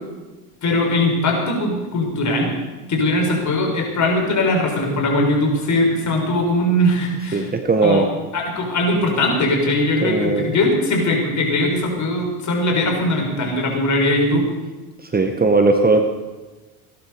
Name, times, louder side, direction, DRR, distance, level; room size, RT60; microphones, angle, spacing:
voice 1, 0.6-2.5 2.9-7.4 7.8-8.0 8.3-14.5, left 1 dB, 40° left, 1 dB, 6.3 m, -20 dB
voice 2, 7.3-8.1 10.0-10.5 15.0-16.0, right 3 dB, 20° right, 6 dB, 1.7 m, -17 dB
18.0 x 11.5 x 6.9 m, 1.2 s
hypercardioid pair, 85°, 44 cm